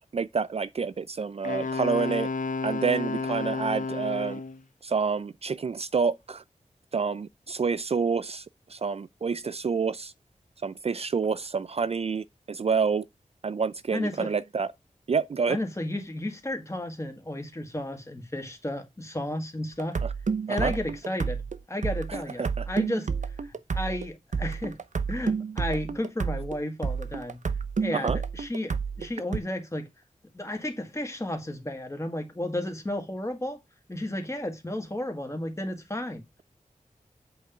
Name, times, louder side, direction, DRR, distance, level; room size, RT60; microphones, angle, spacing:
voice 1, 0.1-2.3 2.6-4.4 4.8-6.4 6.9-8.4 8.7-10.1 10.6-13.1 13.4-14.7 15.1-15.6 20.0-20.1 20.5-20.7 22.1-22.7 27.9-28.2, right 5 dB, 50° right, 0.4 m, -28 dB
Wind instrument woodwind instrument, 1.4-4.6, left 3 dB, 75° left, 0.9 m, -31 dB
voice 2, 13.9-14.3 15.5-20.0 20.5-23.1 23.4-24.8 25.1-27.4 27.8-29.9 30.3-33.6 33.9-36.2, left 1 dB, 20° left, 1.9 m, -33 dB
sound 1, 19.8-29.4, right 5 dB, 65° right, 0.8 m, -30 dB
8.1 x 3.8 x 5.7 m
wide cardioid pair, 95°, 13 cm